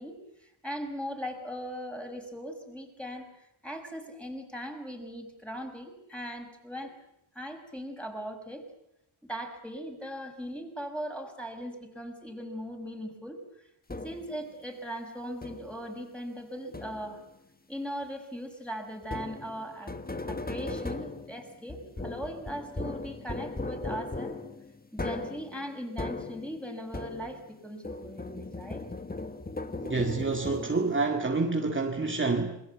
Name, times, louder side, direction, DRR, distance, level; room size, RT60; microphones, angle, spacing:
voice 1, 0.0-6.9 7.3-8.7 9.3-13.4 14.0-17.2 17.7-19.9 20.3-24.4 24.9-28.8, equal, ahead, 6.0 m, -39 dB
sound 1, 13.9-14.4 15.4-15.9 16.7-17.3 19.0-27.6 27.8-31.0, left 2 dB, 20° left, 1.6 m, -38 dB
voice 2, 29.8-32.6, right 3 dB, 25° right, 2.2 m, -28 dB
27.5 x 22.0 x 8.4 m
wide cardioid pair, 95°, 49 cm